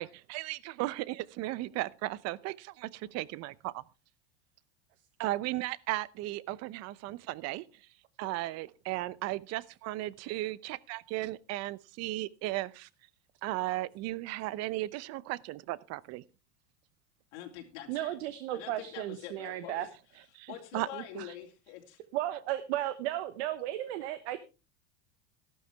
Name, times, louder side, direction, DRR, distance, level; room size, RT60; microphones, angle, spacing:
voice 1, 0.0-3.8 5.2-7.6 8.2-12.9 13.4-16.2 20.3-20.5 20.7-20.9, right 17 dB, 50° right, 0.7 m, -35 dB
voice 2, 17.3-18.1 18.5-19.9 20.5-22.0, left 11 dB, 75° left, 3.1 m, -45 dB
voice 3, 17.9-19.9 20.9-21.0 22.1-24.4, right 13 dB, 70° right, 1.2 m, -34 dB
13.5 x 12.0 x 3.5 m
supercardioid pair, 110°, 34 cm